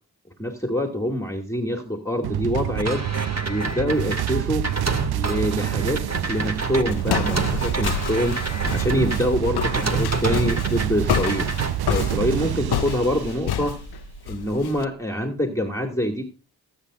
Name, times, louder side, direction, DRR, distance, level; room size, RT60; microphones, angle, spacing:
voice 1, 0.4-3.1 3.4-4.7 5.1-11.5 11.9-13.8 14.3-16.3, equal, 5° left, 4 dB, 2.4 m, -25 dB
sound 1, 2.2-14.4, right 13 dB, 65° right, 0.5 m, -28 dB
sound 2, 2.8-9.2 9.6-10.9 11.1-11.7, right 2 dB, 40° right, 2.5 m, -29 dB
Walk footsteps, 6.2-14.8, left 10 dB, 70° left, 0.7 m, -29 dB
19.5 x 8.8 x 2.6 m, 0.34 s
cardioid pair, 40°, 41 cm